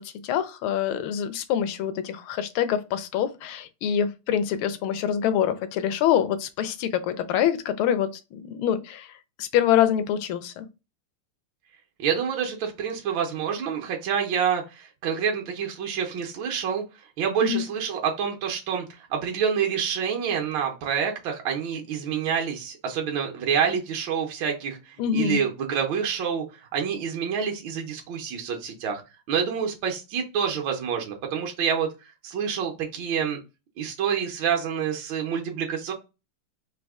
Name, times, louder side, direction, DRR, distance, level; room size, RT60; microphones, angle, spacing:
voice 1, 0.0-9.1 9.4-10.7 17.4-17.6 25.0-25.4, left 9 dB, 80° left, 1.4 m, -25 dB
voice 2, 12.0-16.8 17.2-29.0 29.3-31.9 32.2-33.4 33.8-35.9, right 7 dB, 65° right, 1.5 m, -27 dB
4.2 x 2.8 x 3.5 m
omnidirectional pair, 2.4 m